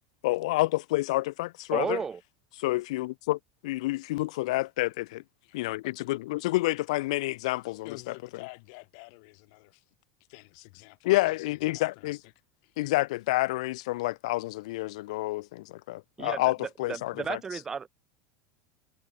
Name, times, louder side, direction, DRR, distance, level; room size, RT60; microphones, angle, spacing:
voice 1, 0.2-2.0 2.6-5.2 5.5-7.9 11.0-12.2 12.8-17.4, left 19 dB, 75° left, 1.2 m, -29 dB
voice 2, 1.7-2.2 16.2-17.9, right 6 dB, 15° right, 0.4 m, -33 dB
voice 3, 5.4-6.1 7.8-9.9 10.3-12.2 12.6-12.8, left 35 dB, 55° left, 4.4 m, -49 dB
supercardioid pair, 170°, 3 cm